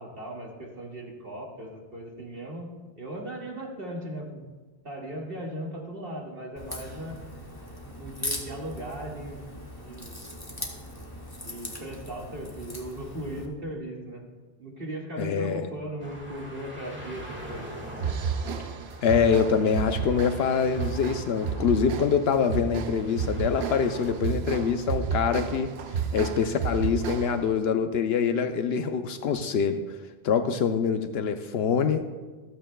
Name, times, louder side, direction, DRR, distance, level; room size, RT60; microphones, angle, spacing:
voice 1, 0.0-2.7 3.0-4.4 4.8-7.2 8.0-9.4 9.8-10.2 11.4-14.2 14.6-17.7, right 1 dB, 65° right, -2 dB, 2.1 m, -37 dB
Crack, 6.6-13.5, left 1 dB, 20° left, 1.6 m, -39 dB
voice 2, 15.2-15.7 19.0-25.7 26.1-29.8 30.2-32.0, left 6 dB, 80° left, 7 dB, 0.9 m, -25 dB
sound 1, 16.0-24.1, equal, 10° right, 1.8 m, -43 dB
sound 2, 18.0-27.5, right 6 dB, 80° right, 0.9 m, -32 dB
25.5 x 8.8 x 2.3 m, 1.3 s
omnidirectional pair, 1.0 m